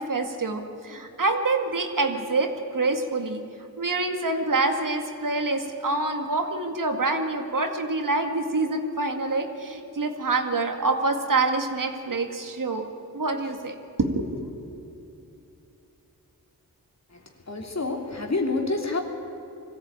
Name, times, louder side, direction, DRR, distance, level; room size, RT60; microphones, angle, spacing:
voice 1, 0.0-3.4 3.8-12.9 13.1-14.5, right 3 dB, 60° right, 5 dB, 2.1 m, -26 dB
voice 2, 17.1-19.0, left 3 dB, 45° left, 2 dB, 3.1 m, -28 dB
21.0 x 15.0 x 9.0 m, 2.8 s
cardioid pair, 50°, 37 cm